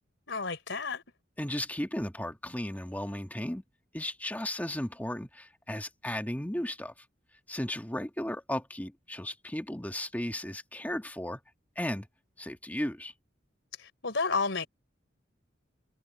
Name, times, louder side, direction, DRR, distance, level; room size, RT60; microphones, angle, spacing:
voice 1, 0.3-1.0 13.8-14.7, left 4 dB, 70° left, 3.7 m, -31 dB
voice 2, 1.4-3.6 3.9-6.9 7.5-11.4 11.8-12.1 12.4-13.1, left 1 dB, 10° left, 1.6 m, -35 dB
head